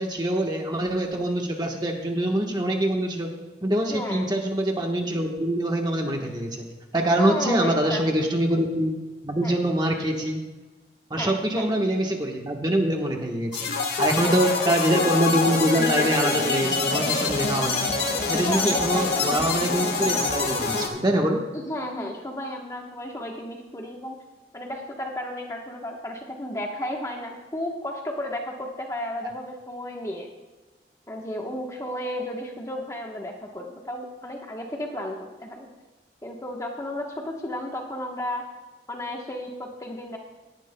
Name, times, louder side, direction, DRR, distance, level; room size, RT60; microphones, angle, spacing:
voice 1, 0.0-3.3 3.6-6.7 6.9-8.9 9.2-10.4 11.1-13.7 14.0-17.9 18.3-21.4 29.2-29.3, right 1 dB, 25° right, 1 dB, 1.2 m, -24 dB
voice 2, 3.9-4.2 7.2-8.1 9.4-9.6 11.2-11.7 14.2-14.4 18.4-19.3 21.5-24.2 24.5-30.3 31.1-35.7 36.2-38.4 38.9-40.2, left 1 dB, 15° left, 0 dB, 1.1 m, -33 dB
sound 1, 13.5-20.9, left 4 dB, 70° left, 1.7 m, -25 dB
18.5 x 10.5 x 2.2 m, 1.3 s
head